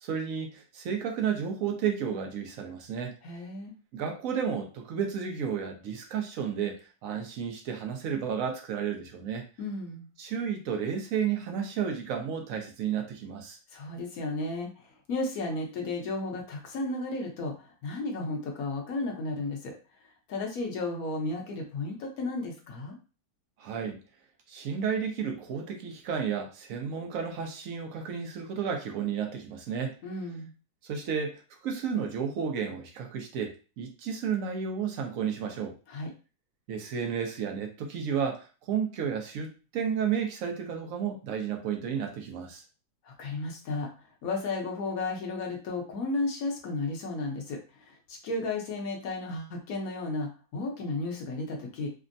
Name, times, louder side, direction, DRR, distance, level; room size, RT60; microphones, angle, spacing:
voice 1, 0.0-3.2 3.9-9.5 10.2-13.6 23.6-24.0 24.5-29.9 30.8-35.8 36.7-42.6, right 7 dB, 65° right, 3 dB, 0.8 m, -32 dB
voice 2, 3.2-3.7 9.6-10.1 13.7-19.7 20.3-23.0 30.0-30.5 35.9-36.1 43.0-43.9 44.2-51.9, left 2 dB, 60° left, 1 dB, 1.1 m, -33 dB
3.4 x 2.0 x 2.5 m, 0.34 s
omnidirectional pair, 2.0 m